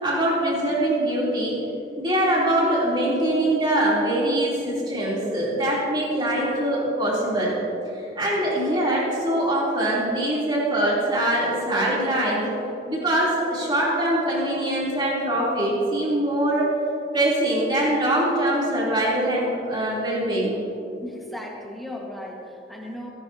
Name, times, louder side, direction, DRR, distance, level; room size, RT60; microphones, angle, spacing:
voice 1, 0.0-1.6 2.0-7.5 8.2-12.5 12.9-16.7 17.1-20.6, right 1 dB, 25° right, -6 dB, 3.0 m, -23 dB
voice 2, 21.0-23.1, left 1 dB, ahead, -2 dB, 1.4 m, -36 dB
19.0 x 11.5 x 2.8 m, 2.9 s
head